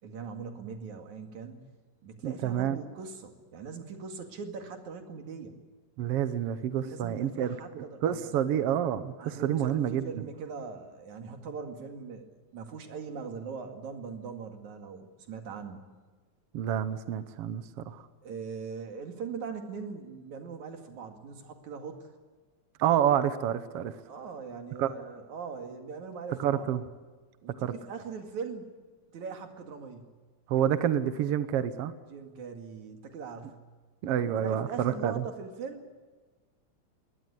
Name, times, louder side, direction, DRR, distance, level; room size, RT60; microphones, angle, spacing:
voice 1, 0.0-1.6 2.0-5.5 6.8-8.5 9.2-15.8 18.2-22.1 24.1-26.7 27.4-28.7 29.1-30.1 32.1-33.6 34.2-35.8, right 5 dB, 80° right, 5 dB, 3.5 m, -41 dB
voice 2, 2.2-2.8 6.0-10.3 16.5-18.0 22.8-24.0 24.8-25.0 26.4-26.8 27.6-27.7 30.5-31.9 34.0-35.2, right 10 dB, 65° right, 11 dB, 1.7 m, -28 dB
21.5 x 18.5 x 9.9 m, 1.3 s
omnidirectional pair, 3.4 m